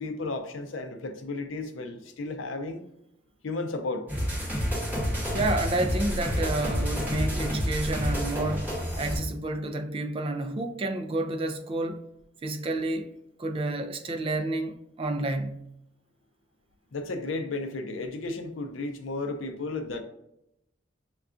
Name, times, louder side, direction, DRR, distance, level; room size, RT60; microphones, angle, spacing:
voice 1, 0.0-2.8 3.4-4.1 16.9-20.0, left 3 dB, 80° left, 0.5 m, -33 dB
sound 1, 4.1-9.2, equal, 10° right, 1.4 m, -29 dB
voice 2, 5.3-12.1 12.4-13.1 13.4-15.6, right 2 dB, 30° right, 0.4 m, -30 dB
6.5 x 2.3 x 2.4 m
head